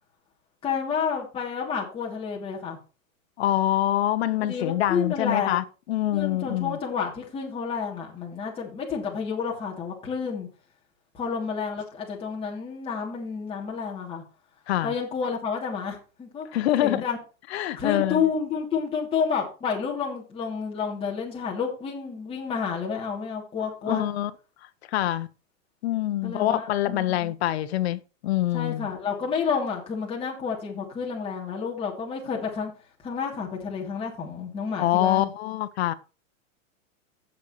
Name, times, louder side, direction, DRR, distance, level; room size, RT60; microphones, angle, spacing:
voice 1, 0.6-2.8 4.4-5.6 6.1-10.5 11.1-14.2 14.8-16.5 16.8-17.2 17.6-24.0 26.2-27.3 28.5-32.7 33.0-35.3, left 6 dB, 15° left, 2.9 m, -30 dB
voice 2, 3.4-6.8 14.7-14.9 16.5-17.0 17.5-18.2 23.9-24.3 24.9-25.3 25.8-28.9 34.8-35.9, left 13 dB, 55° left, 1.2 m, -25 dB
17.0 x 6.6 x 3.2 m
supercardioid pair, 165°, 39 cm